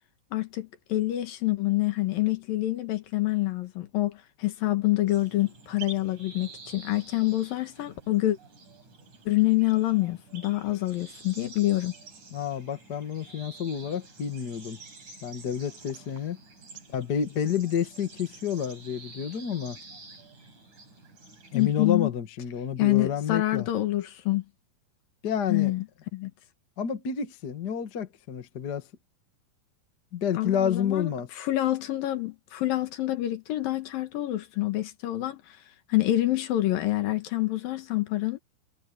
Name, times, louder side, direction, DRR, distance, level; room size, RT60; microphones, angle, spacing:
voice 1, 0.3-8.4 9.3-11.9 21.5-22.1 22.8-24.4 25.5-25.8 26.1-26.3 30.3-35.6 35.9-38.4, left 16 dB, 70° left, 2.9 m, -27 dB
sound 1, 5.1-21.8, right 3 dB, 50° right, 8.1 m, -49 dB
voice 2, 12.3-14.8 15.2-16.4 16.9-19.8 21.5-23.7 25.2-25.7 26.8-28.8 30.1-31.3, left 8 dB, 45° left, 1.4 m, -29 dB
omnidirectional pair, 4.4 m